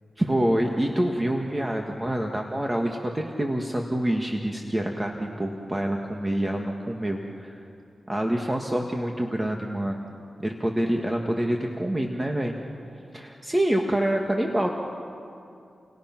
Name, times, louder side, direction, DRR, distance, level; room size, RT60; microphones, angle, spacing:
voice 1, 0.2-7.6 8.1-10.0 10.4-12.6 13.1-14.7, right 1 dB, 15° right, 1 dB, 1.8 m, -26 dB
30.0 x 30.0 x 6.0 m, 2.6 s
wide cardioid pair, 95°, 0 cm